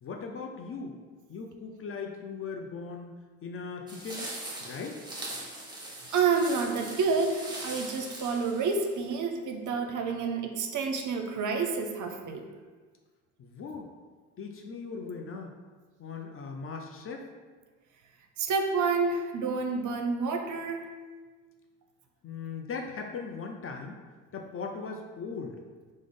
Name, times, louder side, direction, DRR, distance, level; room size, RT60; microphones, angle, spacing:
voice 1, 0.0-0.9 1.3-3.1 3.4-4.3 4.6-5.0 13.4-13.9 14.4-15.5 16.0-17.3 22.2-24.0 24.3-25.6, left 5 dB, 35° left, 3 dB, 0.4 m, -39 dB
sound 1, 3.9-9.2, right 1 dB, 10° right, 0.9 m, -41 dB
voice 2, 6.1-12.5 18.4-20.9, right 4 dB, 45° right, 4 dB, 0.5 m, -29 dB
3.5 x 2.0 x 3.6 m, 1.4 s
hypercardioid pair, 50°, 42 cm